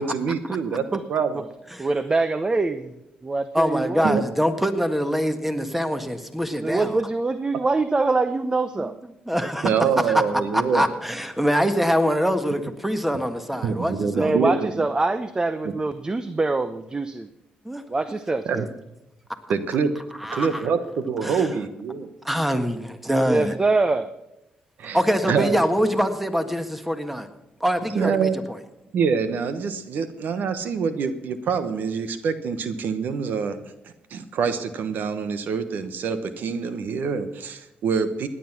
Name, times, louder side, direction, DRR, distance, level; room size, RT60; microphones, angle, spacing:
voice 1, 0.0-1.4 4.0-4.2 9.6-10.9 13.6-14.9 18.5-18.7 19.5-19.9 20.3-22.1 24.8-25.0 25.3-25.6 27.9-28.4 28.9-33.6 34.1-38.3, right 6 dB, 70° right, 11 dB, 1.1 m, -25 dB
voice 2, 1.8-2.9 3.2-4.1 6.5-8.9 14.2-17.3 17.9-18.7 23.2-24.1, right 3 dB, 25° right, 11 dB, 0.8 m, -24 dB
voice 3, 3.5-7.0 8.8-8.9 9.3-9.7 10.5-14.3 17.7-17.8 20.2-20.6 21.2-21.5 22.2-23.5 24.9-27.3 27.6-28.3, equal, 5° right, 8 dB, 1.6 m, -24 dB
17.0 x 10.0 x 6.0 m, 0.91 s
supercardioid pair, 65°, 3 cm